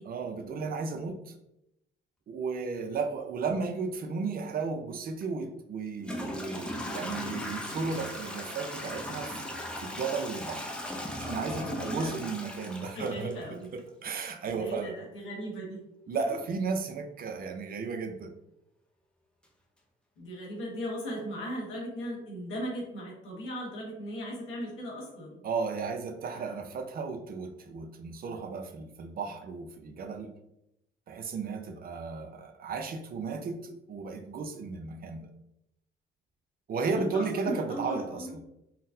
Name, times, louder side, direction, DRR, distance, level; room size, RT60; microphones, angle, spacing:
voice 1, 0.1-1.3 2.3-9.4 9.8-10.8 11.1-13.3 13.7-14.9 16.1-18.3 25.4-30.3 31.1-35.3 36.7-38.3, right 4 dB, 50° right, 5 dB, 0.5 m, -34 dB
Toilet flush / Trickle dribble, 5.2-5.3 6.0-13.8, left 1 dB, 5° left, 0.5 m, -37 dB
voice 2, 11.8-12.1 12.9-13.7 14.5-15.8 20.2-25.4 26.2-26.6 36.9-38.3, equal, 85° left, -3 dB, 1.3 m, -37 dB
3.8 x 2.1 x 2.6 m, 0.84 s
cardioid pair, 90°, 20 cm